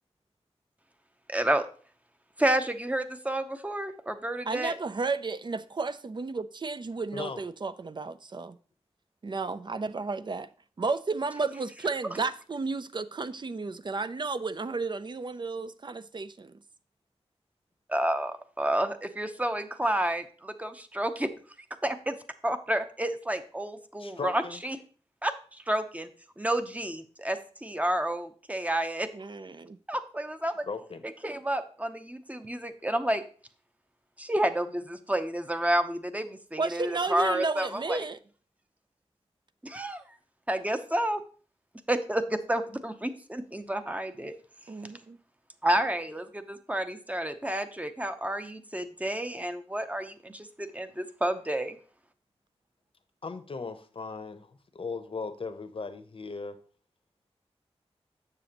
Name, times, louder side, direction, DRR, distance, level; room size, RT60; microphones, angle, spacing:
voice 1, 1.3-1.7 2.4-4.8 17.9-21.3 21.8-22.2 22.4-24.8 25.2-26.1 26.4-29.1 29.9-30.7 31.2-33.2 34.2-38.0 39.6-40.0 40.5-41.2 41.9-44.3 45.6-51.8, right 1 dB, 15° right, 0.7 m, -30 dB
voice 2, 4.5-8.6 9.2-10.5 10.8-16.6 29.1-29.8 36.6-38.2 44.7-45.2, right 3 dB, 45° right, 0.4 m, -33 dB
voice 3, 24.0-24.6 30.7-31.1 53.2-56.6, left 4 dB, 55° left, 0.8 m, -37 dB
7.0 x 6.8 x 2.9 m
cardioid pair, 55°, 11 cm